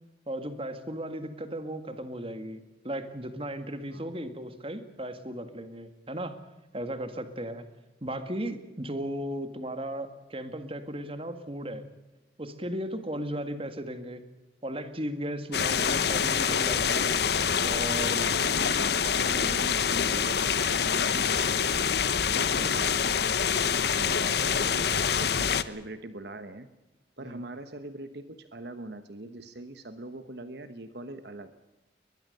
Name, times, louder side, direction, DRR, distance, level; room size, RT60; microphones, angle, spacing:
voice 1, 0.3-6.4 6.7-7.7 8.0-11.8 12.4-14.2 14.6-17.1 17.6-18.4 22.5-22.7 24.4-24.9 27.2-27.4, right 1 dB, 30° right, 9 dB, 1.9 m, -36 dB
sound 1, 15.5-25.6, left 7 dB, 55° left, 0.9 m, -26 dB
voice 2, 18.1-21.8 22.3-23.4 24.0-26.7 27.2-31.5, right 2 dB, 60° right, 10 dB, 1.1 m, -42 dB
22.0 x 20.0 x 6.7 m, 1.1 s
head